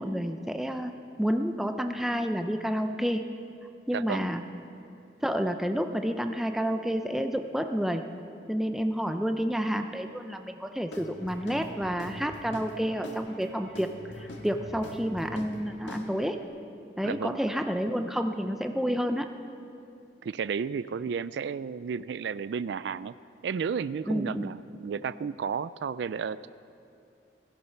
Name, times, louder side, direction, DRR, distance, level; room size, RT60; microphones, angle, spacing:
voice 1, 0.0-3.3 3.9-4.4 5.2-8.0 8.5-13.9 14.1-16.4 17.0-19.3 24.1-24.5, equal, ahead, 6 dB, 0.5 m, -29 dB
voice 2, 3.9-4.3 17.0-17.4 20.2-23.1 23.4-26.5, right 6 dB, 70° right, 16 dB, 0.3 m, -32 dB
Guitar / Drum, 10.9-16.4, equal, 85° left, 1.8 m, -43 dB
16.5 x 14.5 x 5.8 m, 2.6 s
head